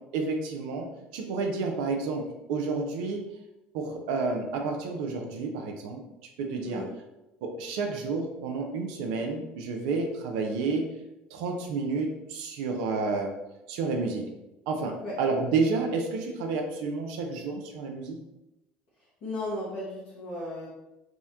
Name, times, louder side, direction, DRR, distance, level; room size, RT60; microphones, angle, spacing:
voice 1, 0.1-3.2 3.7-6.0 6.4-6.8 7.4-10.9 11.3-13.3 13.7-14.3 14.7-18.2, right 4 dB, 80° right, 3 dB, 0.4 m, -30 dB
voice 2, 19.2-20.7, left 1 dB, 75° left, -11 dB, 1.2 m, -35 dB
3.5 x 2.1 x 2.7 m, 0.95 s
supercardioid pair, 75°, 5 cm